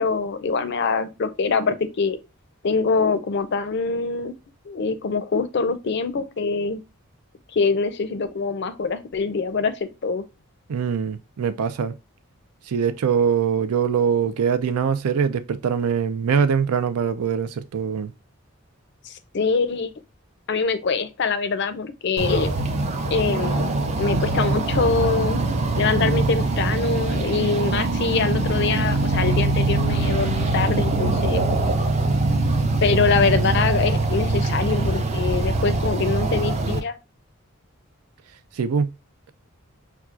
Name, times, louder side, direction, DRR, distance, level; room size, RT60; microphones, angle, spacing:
voice 1, 0.0-2.2 2.6-4.4 4.7-6.8 7.5-10.2 19.1-19.9 20.5-22.5 23.1-23.7 24.0-25.4 25.8-31.4 32.8-37.0, left 4 dB, 50° left, 0.4 m, -24 dB
voice 2, 10.7-12.0 12.7-18.1 38.5-38.9, right 6 dB, 90° right, 0.4 m, -23 dB
sound 1, 22.2-36.8, right 2 dB, 30° right, 0.5 m, -23 dB
5.8 x 2.3 x 2.3 m
head